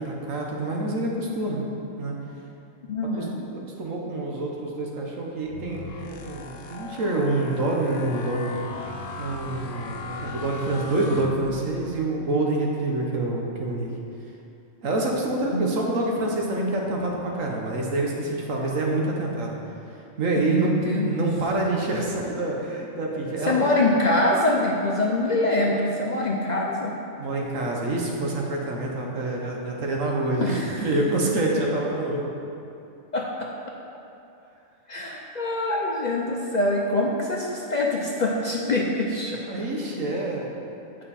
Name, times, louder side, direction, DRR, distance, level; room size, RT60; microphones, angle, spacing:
voice 1, 0.0-1.6 2.0-2.1 3.0-3.3 3.5-8.5 9.2-13.9 14.8-19.6 20.2-23.7 27.2-32.2 39.4-40.5, right 2 dB, 85° right, -1 dB, 1.4 m, -27 dB
voice 2, 2.9-3.5 15.5-15.7 20.4-21.2 23.5-27.0 30.4-30.9 33.1-33.5 34.9-39.4, left 1 dB, 50° left, -2 dB, 0.5 m, -24 dB
sound 1, 5.4-11.9, left 3 dB, 80° left, 1.0 m, -38 dB
9.0 x 5.2 x 4.2 m, 2.7 s
omnidirectional pair, 1.3 m